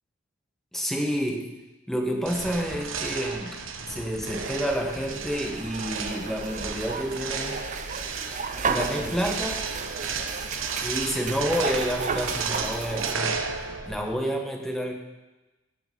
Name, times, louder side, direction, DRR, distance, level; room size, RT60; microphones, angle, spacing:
voice 1, 0.7-1.5 1.9-3.6 3.9-7.6 8.7-9.7 10.8-15.0, equal, ahead, 1 dB, 1.3 m, -29 dB
sound 1, 2.3-14.1, right 5 dB, 75° right, 1.0 m, -33 dB
sound 2, 4.2-13.1, right 4 dB, 40° right, 0.7 m, -34 dB
16.0 x 5.9 x 5.3 m, 1.1 s
head